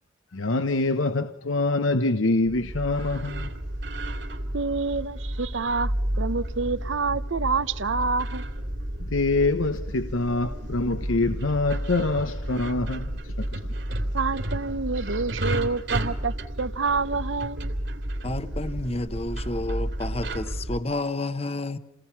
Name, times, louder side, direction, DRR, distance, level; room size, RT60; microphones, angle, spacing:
voice 1, 0.3-3.5 9.0-13.6, left 2 dB, 90° left, 1.0 m, -25 dB
sound 1, 2.5-20.8, right 1 dB, 60° right, 2.7 m, -31 dB
voice 2, 4.5-8.4 14.1-17.7, right 4 dB, 75° right, 0.9 m, -28 dB
voice 3, 18.2-21.8, left 2 dB, 30° left, 1.0 m, -30 dB
29.5 x 19.0 x 5.9 m
head